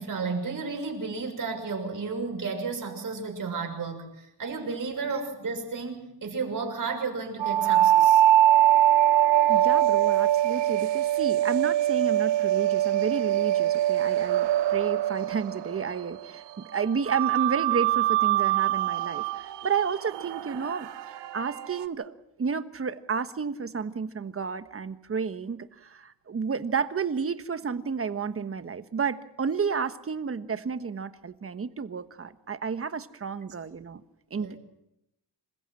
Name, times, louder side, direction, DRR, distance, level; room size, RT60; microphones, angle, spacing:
voice 1, 0.0-8.2 34.4-34.6, right 4 dB, 50° right, 3 dB, 6.6 m, -33 dB
sound 1, 7.4-16.2 17.1-21.8, right 13 dB, 90° right, 1.0 m, -23 dB
voice 2, 9.5-16.4 16.7-34.0 34.3-34.6, right 6 dB, 35° right, 11 dB, 1.3 m, -31 dB
27.0 x 15.5 x 7.7 m, 0.87 s
cardioid pair, 100°, 41 cm